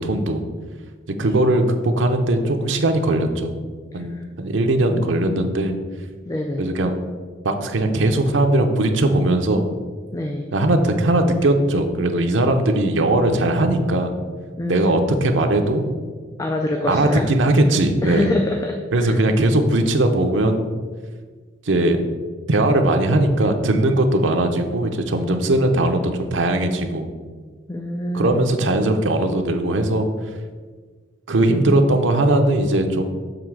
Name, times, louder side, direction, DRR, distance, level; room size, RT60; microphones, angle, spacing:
voice 1, 0.0-0.4 1.2-3.5 3.9-5.8 6.6-7.0 7.4-9.7 10.5-14.1 14.7-15.8 16.9-18.3 18.9-20.7 21.6-22.0 22.5-27.1 28.1-30.1 31.3-33.0, right 1 dB, 80° right, 5 dB, 0.7 m, -19 dB
voice 2, 6.3-6.7 10.1-10.5 14.6-14.9 16.4-17.3 18.0-19.2 27.7-28.4 31.5-31.9, left 1 dB, 15° left, 2 dB, 0.4 m, -25 dB
6.9 x 3.4 x 6.1 m, 1.5 s
head